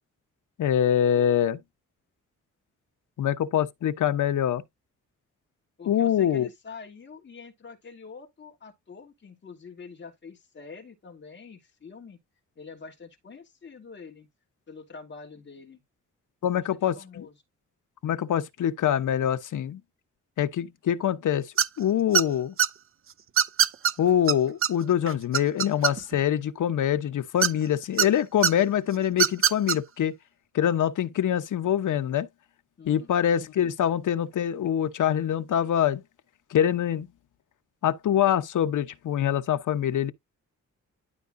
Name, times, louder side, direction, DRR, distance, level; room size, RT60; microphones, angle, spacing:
voice 1, 0.6-1.6 3.2-4.6 5.9-6.5 16.4-17.3 18.0-19.8 20.4-21.5 21.8-22.5 24.0-30.1 30.5-32.3 32.9-36.0 36.5-37.1 37.8-40.1, left 10 dB, 85° left, 1.0 m, -24 dB
voice 2, 5.8-12.2 12.6-14.3 14.7-15.8 16.4-17.4 32.8-33.1, left 5 dB, 35° left, 2.9 m, -46 dB
sound 1, 21.6-21.8 22.1-22.7 23.4-23.9 24.3-24.4 24.6-24.7 25.1-26.2 27.4-28.1 28.4-28.5 29.1-29.8, right 8 dB, 45° right, 0.6 m, -22 dB
12.5 x 4.7 x 2.6 m
wide cardioid pair, 170°, 30 cm